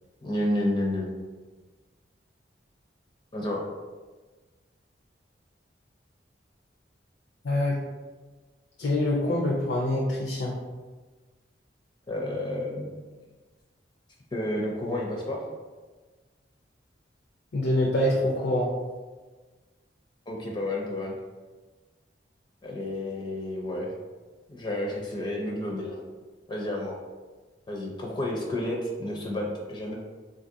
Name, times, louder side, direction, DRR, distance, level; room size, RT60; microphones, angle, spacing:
voice 1, 0.2-1.1 3.3-3.6 12.1-12.9 14.3-15.4 20.3-21.2 22.6-23.9 24.5-26.0 26.5-26.9 27.7-30.0, left 1 dB, 25° left, -2 dB, 0.4 m, -30 dB
voice 2, 7.4-7.8 8.8-10.5 17.5-18.7, left 1 dB, 80° left, -3 dB, 0.5 m, -25 dB
3.9 x 2.4 x 2.6 m, 1.3 s
head